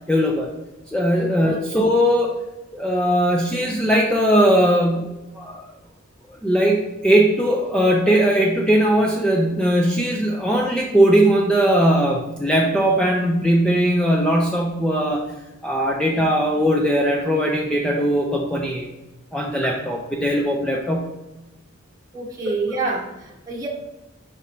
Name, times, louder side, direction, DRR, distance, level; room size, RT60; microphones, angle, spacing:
voice 1, 0.1-0.5 0.9-2.4 2.7-5.7 6.4-15.2 15.6-18.9 19.3-21.1, equal, 5° left, -1 dB, 0.5 m, -19 dB
voice 2, 1.1-1.6 22.1-23.7, right 3 dB, 15° right, -4 dB, 1.0 m, -28 dB
5.2 x 4.8 x 4.4 m, 1.0 s
head